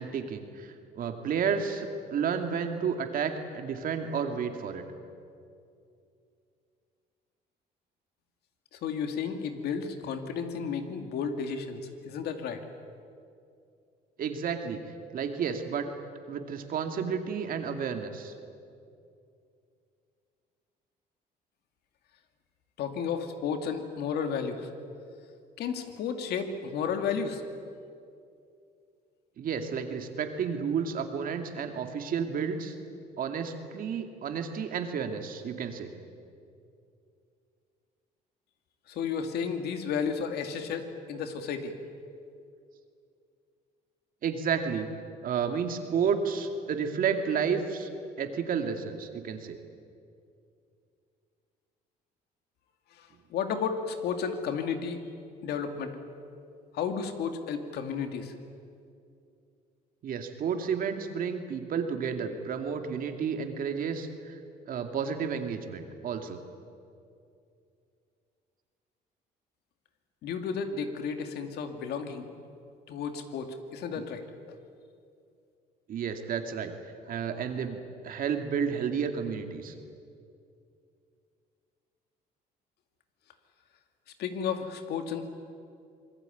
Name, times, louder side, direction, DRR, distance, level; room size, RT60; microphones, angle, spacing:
voice 1, 0.0-4.8 14.2-14.8 15.1-15.9 16.3-18.3 29.4-32.7 33.2-35.9 44.2-44.9 45.2-47.9 48.2-49.6 60.0-64.4 64.7-66.4 75.9-79.7, right 6 dB, 55° right, 6 dB, 2.4 m, -31 dB
voice 2, 8.7-12.6 22.8-24.7 25.6-27.4 38.9-41.7 53.0-55.0 55.4-55.9 56.7-58.3 70.2-72.3 72.9-74.2 84.2-85.2, left 6 dB, 70° left, 6 dB, 2.5 m, -33 dB
26.0 x 20.5 x 9.3 m, 2.5 s
cardioid pair, 110°, 17 cm